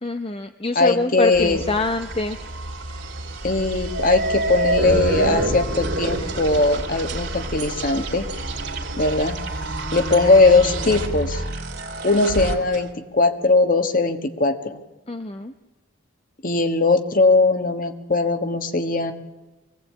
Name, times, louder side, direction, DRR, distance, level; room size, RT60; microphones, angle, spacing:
voice 1, 0.0-2.4 15.1-15.5, left 2 dB, 30° left, 8 dB, 0.7 m, -25 dB
voice 2, 0.7-1.6 3.4-8.3 9.0-9.4 9.9-11.4 12.0-12.9 13.1-14.8 16.4-19.1, left 3 dB, 45° left, 7 dB, 1.6 m, -19 dB
sound 1, 1.3-1.6 2.0-2.4 2.8-2.9 3.7-12.8, right 2 dB, 55° right, 2.6 m, -28 dB
sound 2, 1.3-12.6, right 1 dB, 70° right, 2.7 m, -31 dB
23.5 x 17.0 x 8.7 m, 1.1 s
head